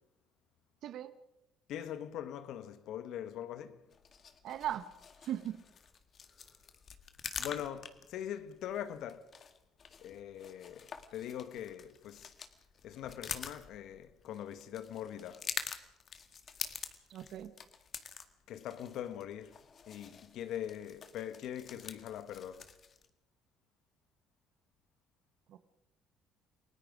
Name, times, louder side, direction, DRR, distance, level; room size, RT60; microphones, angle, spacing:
voice 1, 1.7-3.8 7.4-9.3 10.0-12.3 12.8-15.4 18.5-19.6 19.9-22.6, left 10 dB, 65° left, 1.4 m, -42 dB
sound 1, 3.9-23.1, left 6 dB, 45° left, 1.9 m, -47 dB
voice 2, 4.4-4.9 5.2-5.6 17.1-17.5 25.5-25.6, right 11 dB, 65° right, 1.4 m, -38 dB
29.0 x 19.0 x 5.1 m
hypercardioid pair, 60°, 0 cm